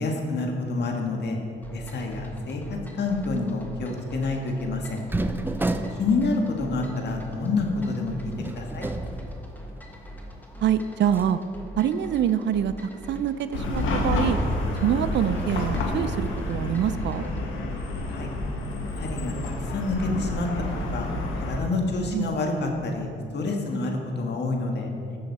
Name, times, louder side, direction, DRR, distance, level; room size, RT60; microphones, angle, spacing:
voice 1, 0.0-1.4 1.7-5.0 6.0-8.9 18.1-18.3 19.0-20.5 20.8-21.1 21.4-24.9, left 3 dB, 60° left, 2 dB, 1.7 m, -28 dB
sound 1, 1.6-17.5, equal, 10° left, 1.5 m, -43 dB
sound 2, 5.1-10.0 10.3-10.4 11.0-11.4, right 2 dB, 10° right, 0.5 m, -32 dB
voice 2, 10.6-11.4 11.8-14.4 14.8-17.3 22.1-22.3, right 9 dB, 65° right, 12 dB, 0.5 m, -25 dB
Chatter / Car passing by / Traffic noise roadway noise, 13.5-21.6, left 2 dB, 80° left, 1.5 m, -29 dB
14.5 x 6.5 x 4.1 m, 2.7 s
cardioid pair, 90°, 20 cm